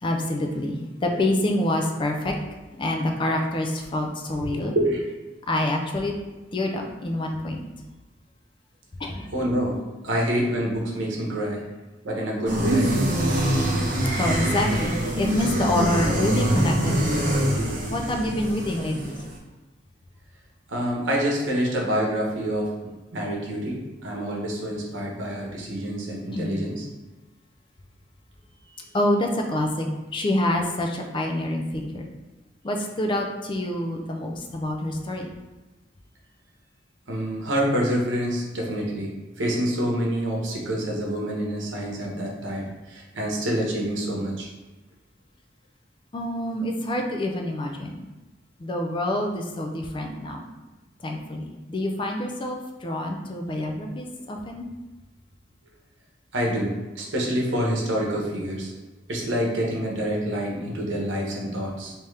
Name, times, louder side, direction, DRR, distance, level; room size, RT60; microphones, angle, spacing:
voice 1, 0.0-2.3 2.8-4.7 5.5-6.1 6.5-7.6 9.0-9.3 14.2-17.3 17.9-19.1 26.3-26.6 28.9-32.1 32.6-35.3 46.1-48.1 48.6-50.5 51.0-54.7, left 1 dB, 25° left, 2 dB, 0.4 m, -27 dB
voice 2, 4.5-5.1 9.3-9.8 10.0-11.6 12.0-13.2 20.7-26.8 37.1-44.5 56.3-58.7 59.1-61.9, equal, 85° right, -2 dB, 0.9 m, -27 dB
sound 1, 12.5-19.3, right 1 dB, 45° right, 0.7 m, -24 dB
3.5 x 2.8 x 3.2 m, 1.2 s
head